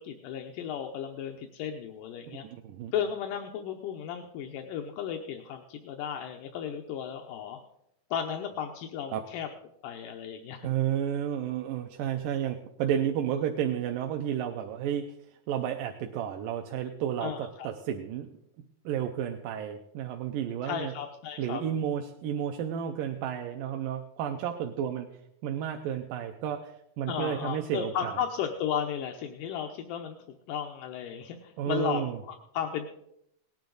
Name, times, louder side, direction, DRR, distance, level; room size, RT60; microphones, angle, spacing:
voice 1, 0.0-2.5 2.9-7.6 8.1-9.5 9.8-10.7 17.2-17.7 20.6-21.6 27.1-30.2 30.5-32.9, left 8 dB, 80° left, 4 dB, 2.4 m, -34 dB
voice 2, 2.4-2.9 9.1-9.2 10.6-15.1 15.5-18.3 18.9-20.9 21.4-25.1 25.4-28.1 31.6-32.2, right 9 dB, 85° right, 4 dB, 2.4 m, -31 dB
18.5 x 10.5 x 3.9 m, 0.77 s
omnidirectional pair, 3.8 m